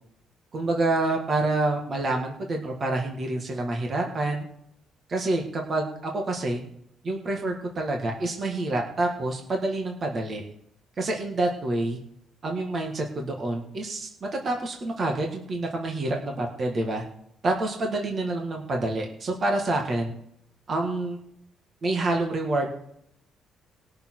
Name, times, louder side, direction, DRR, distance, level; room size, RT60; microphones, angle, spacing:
voice 1, 0.5-4.5 5.1-6.6 7.0-10.4 11.0-12.0 12.4-17.0 17.4-20.1 20.7-21.2 21.8-22.7, right 2 dB, 30° right, 1 dB, 1.7 m, -27 dB
20.0 x 6.7 x 4.7 m, 0.72 s
cardioid pair, 180°, 0 cm